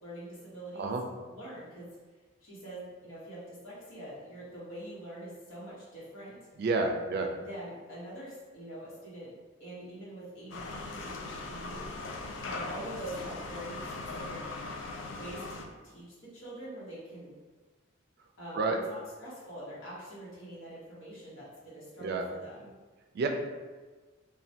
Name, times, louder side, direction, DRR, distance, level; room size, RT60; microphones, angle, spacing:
voice 1, 0.0-0.9 1.3-1.9 2.4-6.4 7.4-9.3 9.6-11.8 12.4-14.4 15.2-17.4 18.4-22.7, right 1 dB, 80° left, -8 dB, 1.0 m, -44 dB
voice 2, 6.6-7.3 18.5-18.8 22.0-22.2 23.1-23.3, right 3 dB, 55° right, 3 dB, 0.3 m, -29 dB
sound 1, 10.5-15.6, left 3 dB, 65° left, 0.3 m, -39 dB
3.2 x 2.2 x 2.7 m, 1.3 s
head